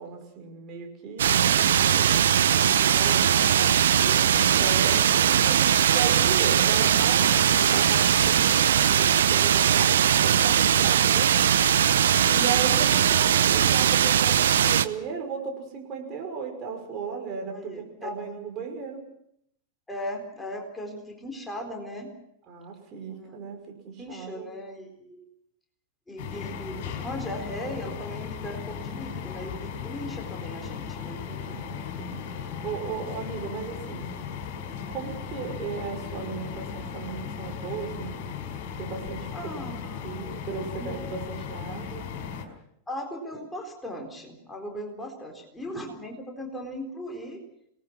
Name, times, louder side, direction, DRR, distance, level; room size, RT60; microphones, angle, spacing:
voice 1, 0.0-3.6 4.5-11.4 12.3-19.1 22.5-24.5 31.3-34.1 34.9-38.3 38.8-39.6 40.0-42.1, right 6 dB, 35° right, 3 dB, 5.7 m, -36 dB
sound 1, 1.2-14.9, right 9 dB, 65° right, 0.9 m, -20 dB
voice 2, 2.7-5.3 12.2-12.5 17.5-18.1 19.9-22.1 23.1-23.4 24.0-25.3 26.1-31.2 39.3-40.2 40.7-41.0 42.9-47.4, equal, 10° left, 1 dB, 4.1 m, -38 dB
sound 2, 26.2-42.5, left 7 dB, 45° left, 5.0 m, -36 dB
27.0 x 19.5 x 6.1 m, 0.75 s
figure-of-eight pair, 90°, 0 cm